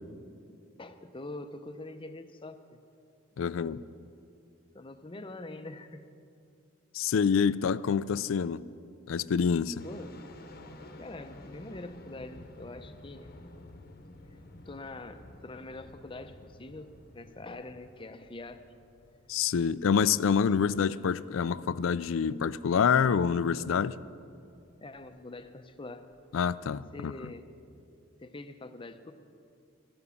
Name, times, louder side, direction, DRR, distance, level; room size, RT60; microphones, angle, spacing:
voice 1, 0.8-2.8 4.7-6.0 9.8-10.1 11.0-13.4 14.7-16.9 17.1-18.6 24.8-26.1 26.9-27.5 28.2-29.1, left 2 dB, 25° left, 0.6 m, -44 dB
voice 2, 3.4-3.8 6.9-8.6 9.1-9.8 19.3-24.0 26.3-27.1, left 6 dB, 80° left, 0.4 m, -27 dB
sound 1, 9.8-26.5, left 2 dB, 50° left, 0.9 m, -53 dB
13.5 x 11.0 x 7.0 m
head